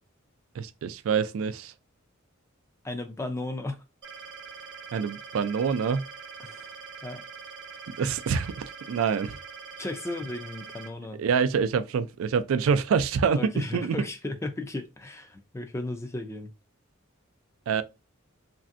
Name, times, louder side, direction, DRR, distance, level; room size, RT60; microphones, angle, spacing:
voice 1, 0.6-1.7 4.9-6.0 8.0-8.5 8.9-9.4 11.2-14.0 17.7-17.8, right 6 dB, 80° right, 0.3 m, -26 dB
voice 2, 2.8-3.8 6.4-6.7 7.0-7.2 9.8-11.2 13.3-16.5, left 2 dB, 15° left, 0.3 m, -35 dB
sound 1, 4.0-10.9, right 5 dB, 65° right, 0.7 m, -43 dB
3.1 x 2.6 x 2.5 m
head